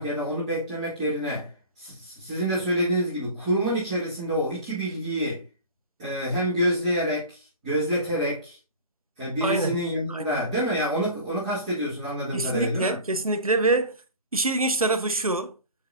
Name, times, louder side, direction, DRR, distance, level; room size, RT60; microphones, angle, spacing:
voice 1, 0.0-1.5 1.8-5.4 6.0-8.6 9.2-13.0, equal, 10° right, 1.8 m, -27 dB
voice 2, 9.4-9.8 10.1-10.3 12.3-13.9 14.3-15.5, right 2 dB, 70° right, 1.0 m, -25 dB
8.0 x 5.3 x 2.6 m
figure-of-eight pair, 165°, 19 cm